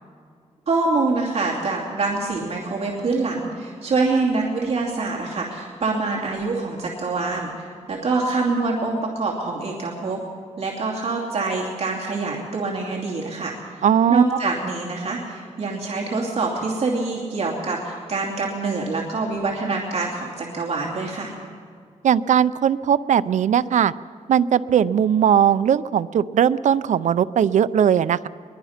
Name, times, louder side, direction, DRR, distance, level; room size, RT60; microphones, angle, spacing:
voice 1, 0.7-10.2 10.6-21.3, right 3 dB, 55° right, -3 dB, 2.7 m, -25 dB
voice 2, 13.8-14.4 22.0-23.9 24.3-28.3, right 8 dB, 75° right, 16 dB, 0.5 m, -19 dB
22.0 x 22.0 x 5.8 m, 2.2 s
wide cardioid pair, 170°, 13 cm